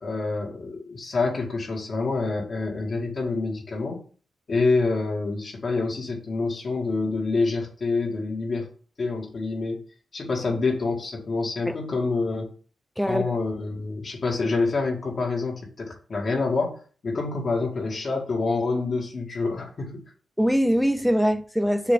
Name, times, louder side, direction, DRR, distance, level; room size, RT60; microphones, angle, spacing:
voice 1, 0.0-4.0 4.5-8.7 9.0-9.8 10.1-12.5 13.1-20.0, left 3 dB, 40° left, 2.3 m, -27 dB
voice 2, 13.0-13.3 20.4-21.9, equal, ahead, 0.6 m, -22 dB
6.9 x 3.2 x 6.0 m
wide cardioid pair, 140°, 0 cm